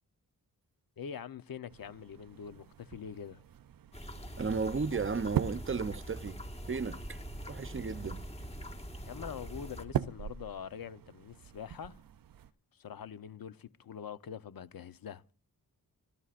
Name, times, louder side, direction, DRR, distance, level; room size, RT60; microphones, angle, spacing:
voice 1, 1.0-3.4 9.1-12.0 12.7-15.2, left 8 dB, 80° left, 0.9 m, -44 dB
sound 1, 1.7-12.5, right 10 dB, 75° right, 0.7 m, -42 dB
sound 2, 3.9-9.9, equal, 15° left, 1.7 m, -44 dB
voice 2, 4.4-6.4 6.7-7.2 7.5-8.3, right 5 dB, 35° right, 0.7 m, -34 dB
27.0 x 12.5 x 2.5 m
wide cardioid pair, 135°, 35 cm